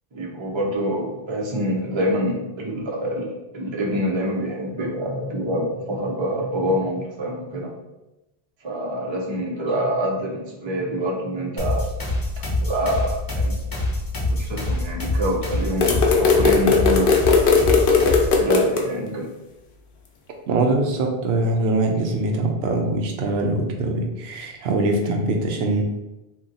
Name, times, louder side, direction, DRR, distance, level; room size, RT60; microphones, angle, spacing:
voice 1, 0.1-3.3 3.5-7.7 8.6-11.9 12.6-13.6 14.4-17.1 18.2-19.3, equal, 35° right, -2 dB, 0.5 m, -26 dB
sound 1, 11.6-18.4, left 1 dB, 25° left, 0.7 m, -25 dB
sound 2, 15.8-18.8, left 5 dB, 65° left, 0.7 m, -17 dB
voice 2, 20.5-25.8, right 2 dB, 85° right, 2 dB, 0.8 m, -22 dB
2.7 x 2.2 x 3.8 m, 0.98 s
omnidirectional pair, 1.0 m